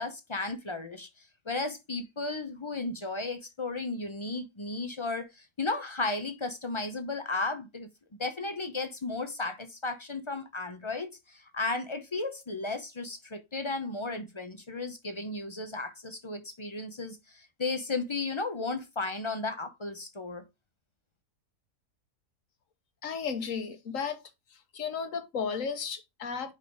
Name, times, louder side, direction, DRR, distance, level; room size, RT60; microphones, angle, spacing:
voice 1, 0.0-7.9 8.2-20.4, left 3 dB, 35° left, 0.5 m, -34 dB
voice 2, 23.0-24.2 24.7-26.5, left 6 dB, 65° left, 1.4 m, -34 dB
5.3 x 4.1 x 4.9 m
omnidirectional pair, 1.5 m